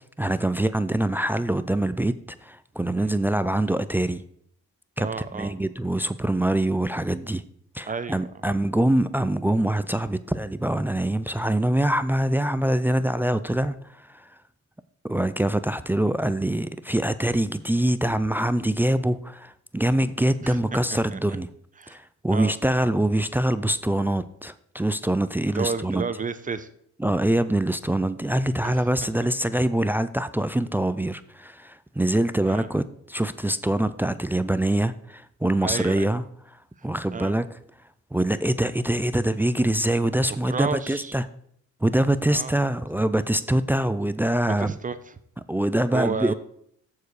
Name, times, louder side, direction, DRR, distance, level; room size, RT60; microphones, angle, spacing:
voice 1, 0.0-2.1 2.4-4.2 5.0-5.1 5.3-7.4 7.7-14.3 15.0-21.5 21.9-26.0 27.0-36.2 36.8-37.5 38.1-41.2 41.8-44.8 45.5-46.3, right 1 dB, 5° right, 14 dB, 0.4 m, -24 dB
voice 2, 5.0-5.6 7.9-8.3 20.4-20.6 21.1-21.2 21.8-22.0 22.3-22.6 25.5-26.7 28.6-28.9 32.5-32.7 35.6-36.1 36.8-37.4 40.4-41.2 42.3-42.6 44.6-45.1 45.9-46.3, right 5 dB, 25° right, 12 dB, 0.7 m, -31 dB
14.0 x 4.7 x 4.8 m, 0.68 s
cardioid pair, 90°, 30 cm